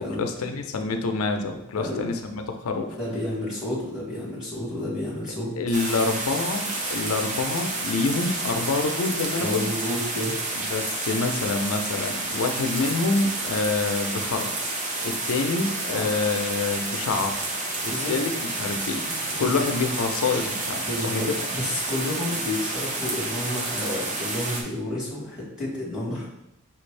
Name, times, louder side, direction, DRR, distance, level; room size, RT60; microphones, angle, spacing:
voice 1, 0.0-3.0 5.6-9.7 10.7-14.5 15.0-17.3 17.8-18.3 18.6-19.0 19.4-21.5, left 3 dB, 75° left, 5 dB, 0.5 m, -27 dB
voice 2, 3.0-5.5 9.4-10.4 15.9-16.2 17.9-18.1 19.3-19.6 20.7-26.3, left 1 dB, 5° right, -7 dB, 1.3 m, -31 dB
sound 1, 5.7-24.6, right 2 dB, 35° right, 0.6 m, -30 dB
5.6 x 2.6 x 3.2 m, 0.81 s
head